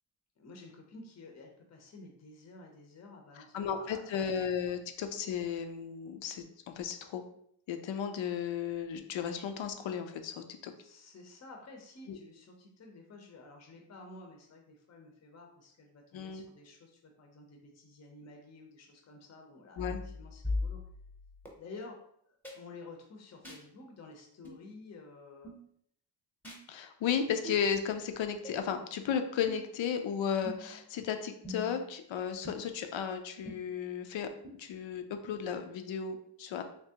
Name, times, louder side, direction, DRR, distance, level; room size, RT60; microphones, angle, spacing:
voice 1, 0.4-4.1 10.8-20.8 21.6-25.5, left 3 dB, 35° left, 2 dB, 0.6 m, -51 dB
voice 2, 3.4-7.2 7.7-10.7 12.1-12.2 16.1-16.4 19.8-20.0 26.7-34.3 34.6-36.6, left 7 dB, 85° left, 7 dB, 0.6 m, -34 dB
sound 1, 19.8-21.5 22.4-22.6 23.4-23.6 24.4-24.6 25.4-25.6 26.4-26.6 27.4-27.6 28.4-28.6 29.4-29.8 30.4-30.8 31.4-31.9 32.4-32.5 33.5-33.6 34.4-34.5, left 2 dB, 5° left, 0.7 m, -39 dB
3.4 x 2.9 x 2.8 m, 0.69 s
wide cardioid pair, 120°, 45 cm